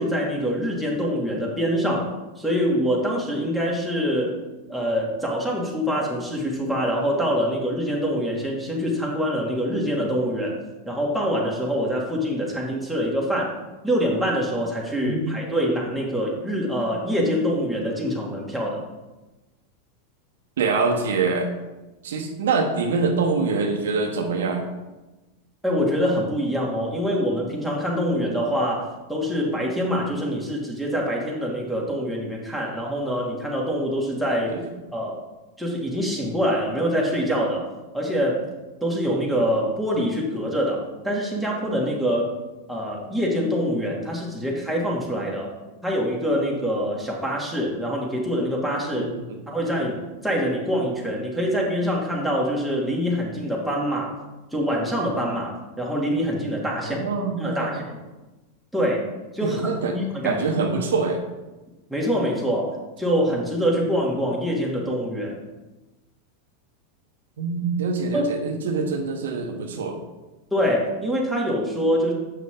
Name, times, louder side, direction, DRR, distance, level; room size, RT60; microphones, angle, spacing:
voice 1, 0.0-2.1 2.4-4.4 4.7-10.6 10.9-13.6 13.8-18.8 25.6-34.5 34.9-35.2 35.6-37.7 37.9-38.4 38.8-42.3 42.7-45.5 45.8-49.1 49.5-54.1 54.5-57.0 57.4-58.0 58.7-59.0 59.3-60.4 61.9-65.4 68.1-68.2 70.5-72.1, equal, ahead, -2 dB, 2.0 m, -25 dB
voice 2, 15.0-15.4 20.6-21.5 22.0-24.7 34.5-34.6 49.0-49.4 56.9-57.7 59.4-60.0 60.2-61.2 67.4-70.0, right 4 dB, 80° right, 3 dB, 1.1 m, -25 dB
7.4 x 5.8 x 3.8 m, 1.1 s
hypercardioid pair, 105°, 0 cm